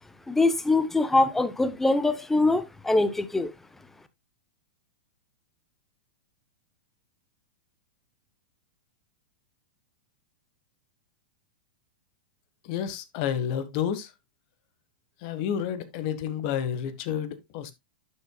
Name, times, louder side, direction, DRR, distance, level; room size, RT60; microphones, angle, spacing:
voice 1, 0.3-3.5, left 2 dB, 5° left, 0.8 m, -23 dB
voice 2, 12.6-14.1 15.2-17.7, left 9 dB, 45° left, 1.4 m, -30 dB
11.5 x 6.9 x 2.3 m
supercardioid pair, 145°, 5 cm